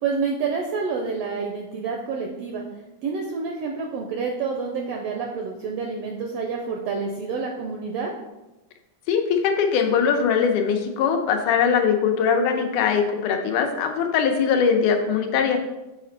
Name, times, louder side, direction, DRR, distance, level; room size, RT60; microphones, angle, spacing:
voice 1, 0.0-2.6 3.0-8.1, right 5 dB, 80° right, 1 dB, 1.4 m, -28 dB
voice 2, 9.1-15.6, left 6 dB, 90° left, 3 dB, 2.2 m, -21 dB
7.2 x 4.3 x 3.9 m, 1.0 s
omnidirectional pair, 3.4 m